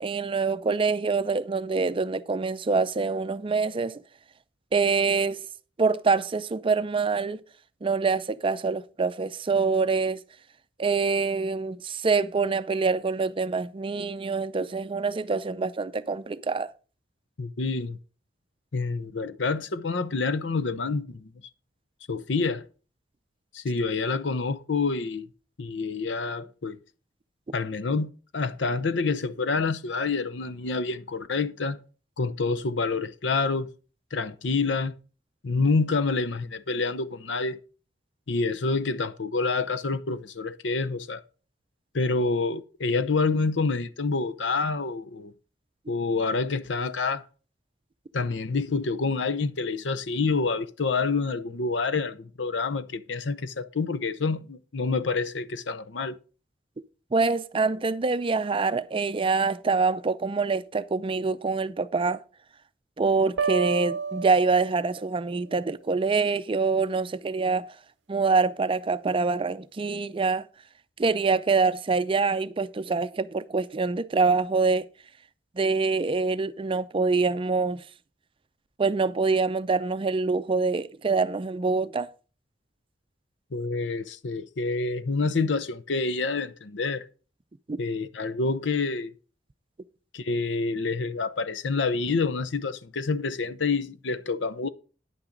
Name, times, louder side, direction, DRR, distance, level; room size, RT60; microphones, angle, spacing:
voice 1, 0.0-4.0 4.7-5.4 5.8-7.4 7.8-10.2 10.8-16.7 57.1-62.2 63.0-67.8 68.1-70.5 71.0-74.9 75.6-77.8 78.8-82.1 87.7-87.8, right 4 dB, 30° right, 0.5 m, -25 dB
voice 2, 17.4-18.0 18.7-21.3 22.1-22.7 23.5-25.3 25.6-26.8 27.5-31.8 32.2-33.7 34.1-34.9 35.4-37.6 38.3-41.2 41.9-45.3 45.9-47.2 48.1-56.2 83.5-87.0 87.8-89.1 90.1-94.7, left 4 dB, 75° left, 0.7 m, -27 dB
sound 1, 63.4-65.3, right 5 dB, 70° right, 0.6 m, -30 dB
10.0 x 8.8 x 3.9 m
head